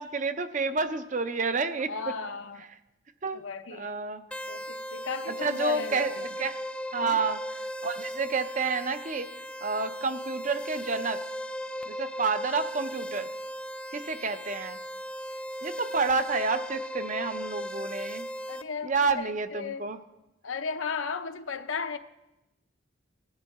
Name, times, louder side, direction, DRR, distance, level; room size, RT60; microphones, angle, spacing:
voice 1, 0.0-2.1 3.2-3.4 3.7-4.2 5.4-6.1 6.4-6.6 6.9-7.4 7.8-9.3 9.6-11.2 11.9-13.3 13.9-14.8 15.6-18.3 18.8-20.0, right 4 dB, 35° right, 10 dB, 0.7 m, -29 dB
voice 2, 1.9-2.7 3.3-4.1 4.5-6.2 7.0-7.2 18.5-19.8 20.4-22.0, left 5 dB, 75° left, 8 dB, 0.7 m, -35 dB
sound 1, 4.3-18.6, equal, 5° left, 0.3 m, -37 dB
19.0 x 10.5 x 3.6 m, 0.96 s
head